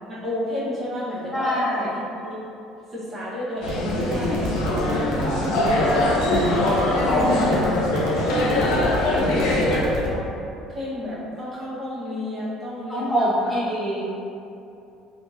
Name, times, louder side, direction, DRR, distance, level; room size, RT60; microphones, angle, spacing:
voice 1, 0.1-2.5 2.9-5.2 7.1-10.3 10.7-13.5 14.0-14.1, left 1 dB, 40° right, -9 dB, 1.3 m, -31 dB
voice 2, 1.3-1.9 5.4-6.7 12.9-14.1, equal, ahead, -9 dB, 0.8 m, -26 dB
sound 1, 3.6-9.8, left 1 dB, 70° left, 0.5 m, -22 dB
sound 2, 3.6-10.1, right 1 dB, 65° right, 0.7 m, -31 dB
3.5 x 2.5 x 2.7 m, 2.7 s
hypercardioid pair, 65°, 0 cm